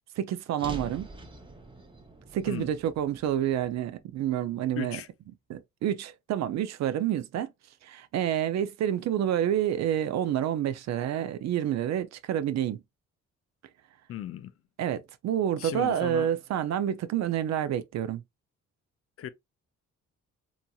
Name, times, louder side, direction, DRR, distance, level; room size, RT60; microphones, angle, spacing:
voice 1, 0.2-1.1 2.3-5.0 5.5-7.5 7.8-12.8 14.8-18.2, right 10 dB, 60° right, 0.4 m, -28 dB
sound 1, 0.6-4.8, right 2 dB, 15° right, 0.6 m, -46 dB
voice 2, 4.8-5.1 14.1-14.5 15.6-16.3 19.2-19.3, left 10 dB, 50° left, 0.4 m, -36 dB
2.9 x 2.6 x 2.3 m
cardioid pair, 90°, 30 cm